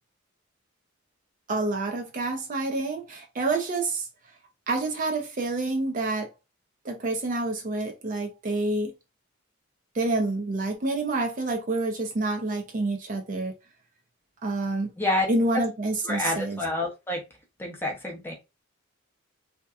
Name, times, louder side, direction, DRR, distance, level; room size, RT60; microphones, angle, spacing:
voice 1, 1.5-4.1 4.7-6.3 6.8-8.9 10.0-13.5 14.4-14.9 15.3-16.6, right 2 dB, 40° right, 0.5 m, -28 dB
voice 2, 16.0-17.2 17.6-18.3, left 2 dB, 10° left, 0.6 m, -28 dB
2.7 x 2.1 x 2.2 m
head